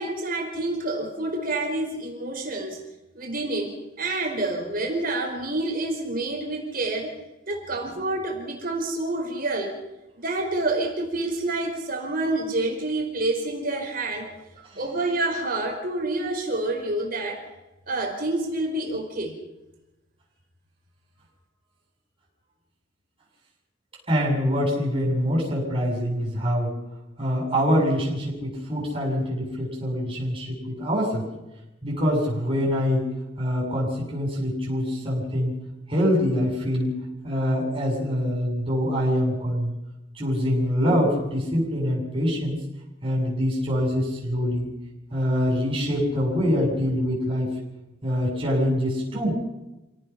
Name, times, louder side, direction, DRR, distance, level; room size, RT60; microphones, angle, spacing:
voice 1, 0.0-2.8 3.1-7.1 7.5-9.7 10.2-14.3 14.8-17.4 17.9-19.4, right 2 dB, 50° right, 2 dB, 4.7 m, -28 dB
voice 2, 24.1-26.7 27.2-31.3 31.8-33.1 33.4-35.6 35.9-36.9 37.2-39.7 40.1-42.6 43.0-44.7 45.1-47.5 48.0-49.4, equal, 30° right, -3 dB, 7.8 m, -24 dB
28.0 x 18.0 x 6.0 m, 0.97 s
head